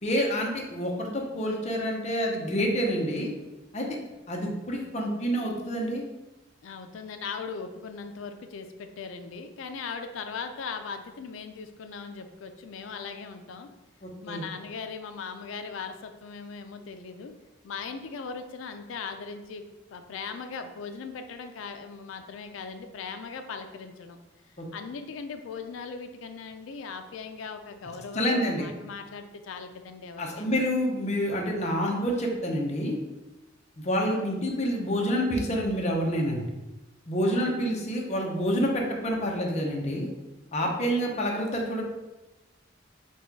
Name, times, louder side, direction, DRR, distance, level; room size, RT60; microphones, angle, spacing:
voice 1, 0.0-3.3 3.7-3.9 4.3-6.0 14.0-14.4 24.6-24.7 28.1-28.7 30.2-33.0 33.8-36.5 37.1-40.1 40.5-41.8, equal, 35° left, 0 dB, 0.7 m, -28 dB
voice 2, 6.6-13.7 14.2-17.3 17.6-24.2 24.7-30.6 37.2-37.6, left 5 dB, 80° left, 7 dB, 0.4 m, -39 dB
4.2 x 2.3 x 4.5 m, 1.1 s
head